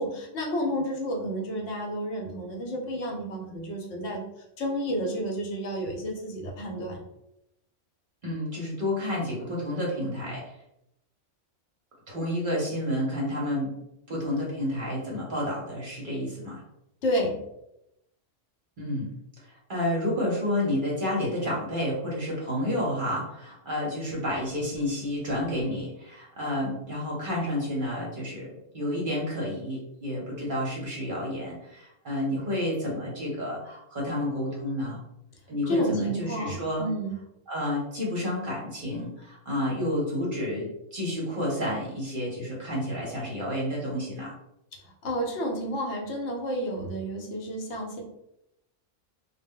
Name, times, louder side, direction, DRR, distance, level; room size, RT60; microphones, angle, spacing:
voice 1, 0.0-4.2 4.6-7.0 17.0-17.4 35.7-37.2 44.8-48.0, equal, 70° left, 0 dB, 0.9 m, -30 dB
voice 2, 8.2-10.5 12.1-13.7 14.1-16.6 18.8-19.1 19.4-35.0 35.5-36.9 37.5-44.3, left 1 dB, 50° right, -4 dB, 0.7 m, -30 dB
2.1 x 2.0 x 3.5 m, 0.83 s
omnidirectional pair, 1.3 m